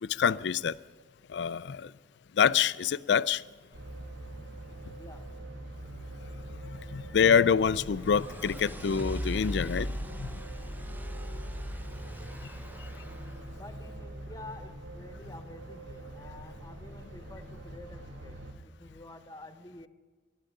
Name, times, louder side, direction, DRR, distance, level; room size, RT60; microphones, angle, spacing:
voice 1, 0.0-0.8 1.3-1.9 2.4-3.4 6.9-10.3, left 7 dB, 65° left, 0.4 m, -26 dB
sound 1, 3.7-18.5, right 1 dB, 90° right, 1.5 m, -44 dB
voice 2, 5.0-5.3 13.6-19.9, left 2 dB, 20° left, 1.0 m, -49 dB
sound 2, 7.5-13.4, equal, 10° right, 0.5 m, -39 dB
11.5 x 11.5 x 9.6 m
head